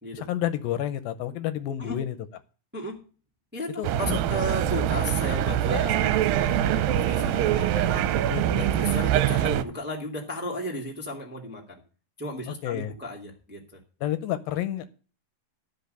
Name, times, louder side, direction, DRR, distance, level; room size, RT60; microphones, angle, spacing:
voice 1, 0.1-2.2 3.8-4.2 5.7-5.8 8.3-8.7 12.5-12.9 14.0-14.9, left 12 dB, 80° left, 11 dB, 2.5 m, -30 dB
voice 2, 3.5-8.0 8.5-11.8 12.2-13.8, left 1 dB, 5° right, -1 dB, 1.5 m, -35 dB
sound 1, 3.8-9.6, right 11 dB, 80° right, 2.3 m, -24 dB
12.5 x 5.3 x 6.8 m, 0.37 s
omnidirectional pair, 4.2 m